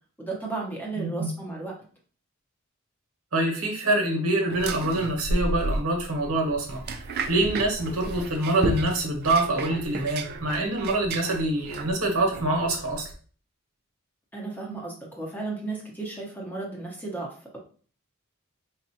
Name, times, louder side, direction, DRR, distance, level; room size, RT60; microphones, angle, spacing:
voice 1, 0.2-1.7 14.3-17.6, right 3 dB, 10° left, -2 dB, 0.8 m, -34 dB
voice 2, 1.0-1.3 3.3-6.8 7.3-13.1, right 2 dB, 80° right, 1 dB, 1.0 m, -25 dB
sound 1, 4.5-13.1, right 2 dB, 45° right, 0.4 m, -33 dB
4.1 x 2.4 x 2.7 m, 0.42 s
head